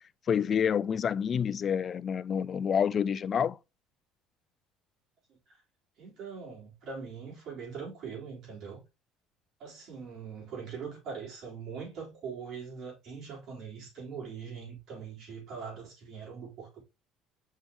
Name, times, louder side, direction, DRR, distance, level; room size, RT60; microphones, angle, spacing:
voice 1, 0.3-3.6, left 7 dB, 40° left, 0.3 m, -28 dB
voice 2, 6.0-8.8 9.6-16.8, right 6 dB, 60° right, 4.3 m, -42 dB
6.2 x 5.6 x 3.1 m
supercardioid pair, 105°, 0 cm